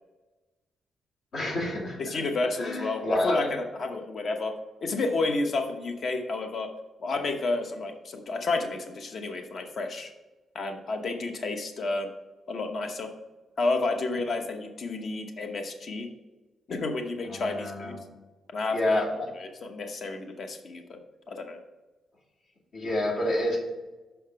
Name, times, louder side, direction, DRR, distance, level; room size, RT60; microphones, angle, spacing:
voice 1, 1.3-2.2 2.6-3.5 17.3-18.0 18.7-19.3 22.7-23.6, left 1 dB, 70° left, -4 dB, 2.5 m, -28 dB
voice 2, 2.0-4.5 4.8-6.7 7.0-10.1 10.5-12.1 12.5-13.1 13.6-16.1 16.7-18.0 18.5-19.0 19.4-21.0 21.3-21.6, left 3 dB, 55° left, 5 dB, 0.9 m, -30 dB
5.7 x 5.7 x 5.5 m, 1.2 s
cardioid pair, 110°, 0 cm